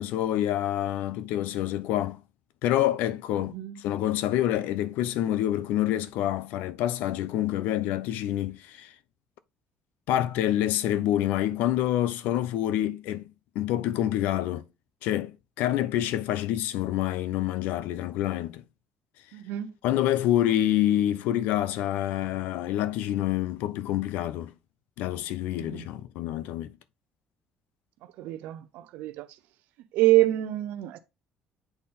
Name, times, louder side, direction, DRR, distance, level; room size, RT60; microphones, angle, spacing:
voice 1, 0.0-2.2 2.6-8.9 10.1-13.2 13.5-14.6 15.0-18.6 19.8-24.5 25.0-26.7, left 12 dB, 80° left, 0.6 m, -27 dB
voice 2, 19.3-19.7 25.6-25.9 28.2-29.3 29.9-31.0, right 16 dB, 70° right, 0.6 m, -26 dB
8.0 x 4.3 x 3.6 m
cardioid pair, 175°, 3 cm